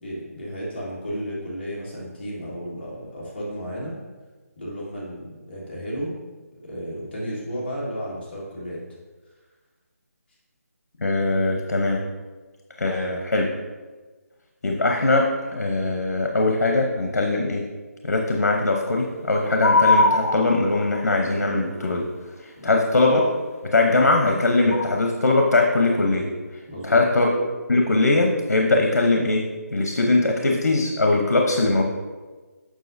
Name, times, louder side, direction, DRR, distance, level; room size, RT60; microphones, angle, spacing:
voice 1, 0.0-4.0 4.6-6.1 6.5-8.8 22.6-22.9 26.7-27.0, equal, 40° left, -6 dB, 1.6 m, -33 dB
voice 2, 11.0-12.0 12.8-13.5 14.6-17.6 18.0-22.1 22.6-23.3 23.7-26.3 26.8-27.3 27.7-31.8, left 2 dB, 90° left, 2 dB, 0.9 m, -21 dB
sound 1, 19.6-21.0 24.7-25.0, left 2 dB, 60° left, 0.8 m, -19 dB
7.4 x 6.4 x 2.6 m, 1.3 s
hypercardioid pair, 175°, 9 cm